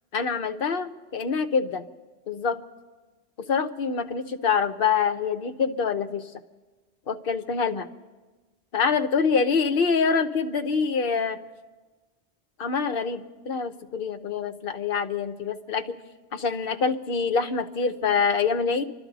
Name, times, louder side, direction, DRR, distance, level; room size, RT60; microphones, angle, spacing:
voice 1, 0.1-1.8 2.3-2.6 3.4-6.3 7.1-7.9 8.7-11.4 12.6-16.0 16.3-18.8, left 5 dB, 60° left, 9 dB, 0.9 m, -25 dB
28.5 x 12.5 x 4.0 m, 1.3 s
omnidirectional pair, 1.1 m